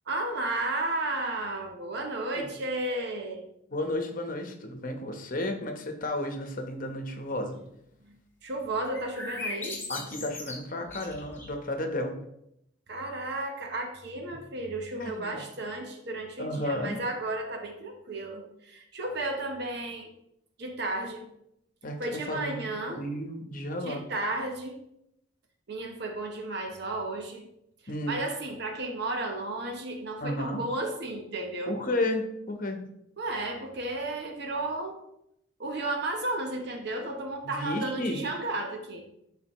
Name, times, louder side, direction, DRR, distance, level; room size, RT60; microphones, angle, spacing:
voice 1, 0.1-3.4 8.0-8.2 8.4-10.0 12.9-20.1 20.6-21.3 22.0-23.0 23.8-24.8 25.7-27.5 28.1-31.7 33.2-35.0 35.6-39.0, right 2 dB, 60° right, 3 dB, 0.9 m, -33 dB
voice 2, 3.7-7.6 9.9-12.1 14.9-15.5 16.4-17.0 21.8-24.0 27.9-28.2 30.2-30.6 31.7-32.8 37.4-38.2, left 1 dB, 45° left, 5 dB, 1.0 m, -33 dB
sound 1, 8.9-11.6, left 2 dB, 15° left, 1.5 m, -38 dB
11.0 x 4.1 x 3.0 m, 0.79 s
head